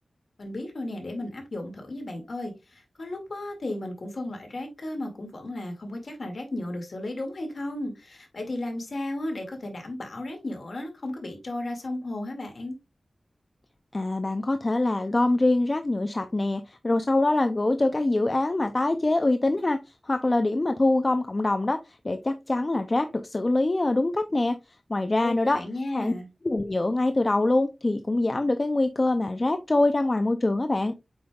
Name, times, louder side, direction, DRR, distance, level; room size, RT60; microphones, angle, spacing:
voice 1, 0.4-12.7 25.2-26.3, left 1 dB, 55° left, 2.2 m, -34 dB
voice 2, 13.9-19.8 20.1-21.8 22.0-24.6 24.9-25.6 25.9-26.1 26.4-30.9, left 2 dB, 30° left, 0.5 m, -24 dB
7.9 x 5.1 x 2.3 m
wide cardioid pair, 100°, 0 cm